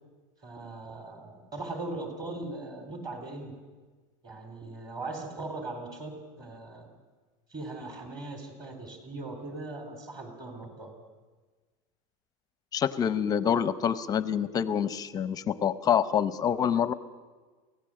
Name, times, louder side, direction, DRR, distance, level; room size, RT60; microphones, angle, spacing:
voice 1, 0.4-3.5 4.2-6.9 7.5-10.9, right 2 dB, 25° right, 5 dB, 3.8 m, -39 dB
voice 2, 12.7-16.9, left 8 dB, 20° left, 14 dB, 0.7 m, -26 dB
23.5 x 16.5 x 7.7 m, 1.4 s
supercardioid pair, 160°, 18 cm